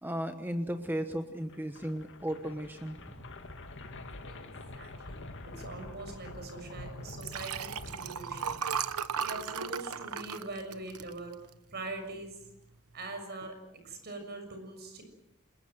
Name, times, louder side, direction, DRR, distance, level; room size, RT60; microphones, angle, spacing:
voice 1, 0.0-3.1 9.2-9.3, equal, 10° right, 7 dB, 1.1 m, -35 dB
sound 1, 1.4-9.4, left 2 dB, 55° left, 2.4 m, -46 dB
voice 2, 4.7-5.2 5.6-8.6 9.2-11.3 11.7-12.3 12.9-13.5 13.8-15.0, right 2 dB, 50° right, 6 dB, 6.7 m, -42 dB
Liquid, 7.1-11.7 12.2-12.5 12.7-12.8, right 7 dB, 80° right, 1.1 m, -36 dB
28.5 x 21.0 x 7.9 m, 0.89 s
head